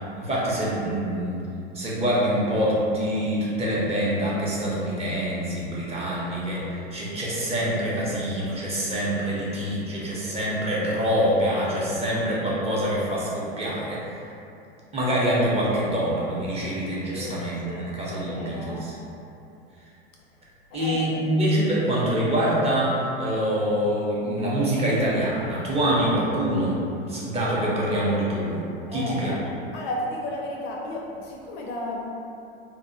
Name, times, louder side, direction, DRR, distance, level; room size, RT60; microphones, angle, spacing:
voice 1, 0.2-1.4 1.7-14.2 14.9-18.9 20.7-26.7 27.1-28.6 28.9-29.3, equal, 20° right, -7 dB, 0.6 m, -25 dB
voice 2, 17.7-18.9 20.7-21.2 21.7-21.9 28.9-29.4 29.7-32.1, left 1 dB, 50° left, -1 dB, 0.4 m, -34 dB
2.6 x 2.1 x 2.6 m, 2.7 s
hypercardioid pair, 90°, 31 cm